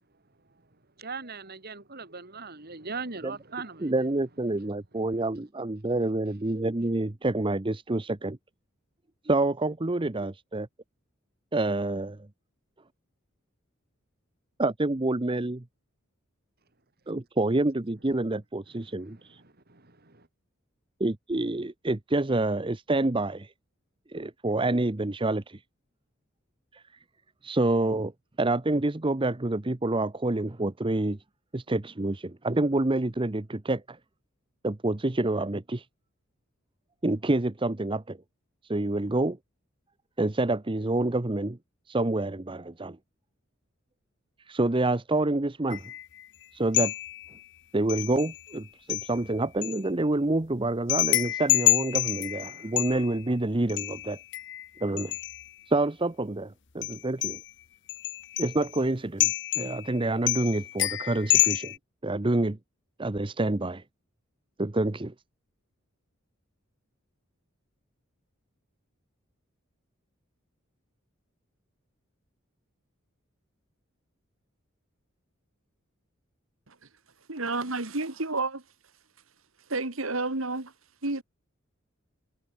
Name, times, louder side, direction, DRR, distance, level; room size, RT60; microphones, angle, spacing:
voice 1, 1.0-3.9 19.1-19.2 19.7-20.3, right 4 dB, 50° right, 3.2 m, -39 dB
voice 2, 3.8-8.4 9.2-10.7 11.5-12.2 14.6-15.6 17.1-19.4 21.0-23.5 24.1-25.6 26.7-26.8 27.4-28.1 28.4-31.2 31.5-34.0 34.6-35.9 37.0-38.2 38.6-39.4 40.2-41.6 41.9-43.0 44.5-45.9 46.5-46.9 47.7-54.2 54.8-55.1 55.7-57.4 58.4-61.7 62.0-62.6 63.0-63.8 64.6-65.1, right 2 dB, 25° right, 0.9 m, -27 dB
sound 1, 45.7-46.2 46.7-47.4 47.9-48.6 48.9-49.8 50.9-53.2 53.7-55.5 56.8-57.5 57.9-58.8 59.2-60.0 60.3-61.8, left 16 dB, 60° left, 1.1 m, -28 dB
voice 3, 77.3-78.6 79.7-80.7 81.0-81.2, right 3 dB, 80° right, 2.7 m, -30 dB
head